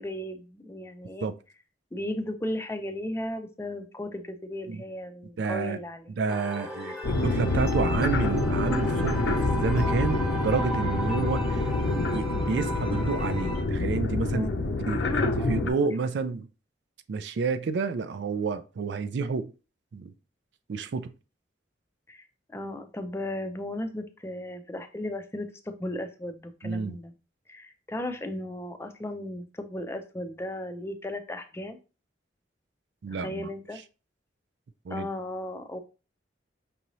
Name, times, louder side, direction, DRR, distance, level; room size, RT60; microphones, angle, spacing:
voice 1, 0.0-1.3 1.9-6.1 14.3-16.0 22.1-22.2 22.5-27.1 27.5-31.8 33.1-33.8 34.9-35.8, left 1 dB, 15° left, 0.4 m, -36 dB
voice 2, 5.4-5.8 6.2-14.5 14.9-16.5 17.1-19.5 19.9-20.1 20.7-21.1 26.6-27.0 33.0-33.5 34.9-35.1, right 4 dB, 65° right, 0.4 m, -30 dB
sound 1, 6.3-13.6, right 1 dB, 5° right, 1.1 m, -36 dB
sound 2, 7.0-15.7, left 2 dB, 90° left, 0.6 m, -27 dB
5.5 x 2.6 x 3.0 m
head